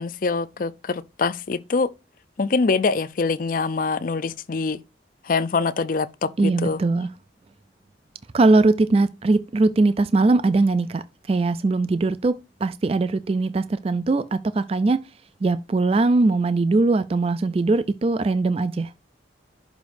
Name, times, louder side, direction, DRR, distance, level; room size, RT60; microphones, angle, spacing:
voice 1, 0.0-1.9 2.4-4.8 5.2-6.8, left 4 dB, 45° left, 0.4 m, -24 dB
voice 2, 6.4-7.1 8.3-15.0 15.4-18.9, right 3 dB, 30° right, 0.3 m, -21 dB
11.0 x 5.2 x 2.6 m
head